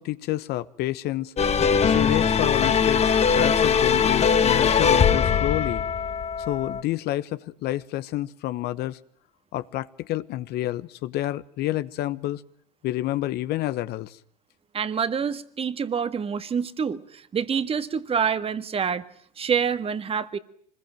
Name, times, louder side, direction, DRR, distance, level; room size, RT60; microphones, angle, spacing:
voice 1, 0.0-1.3 1.8-5.8 6.4-9.0 9.5-12.4 12.8-14.2, left 15 dB, 55° left, 1.1 m, -29 dB
sound 1, 1.4-6.8, left 6 dB, 30° left, 1.6 m, -21 dB
voice 2, 14.7-19.0 19.4-20.4, right 7 dB, 30° right, 1.7 m, -27 dB
25.5 x 21.0 x 9.1 m
hypercardioid pair, 85°, 20 cm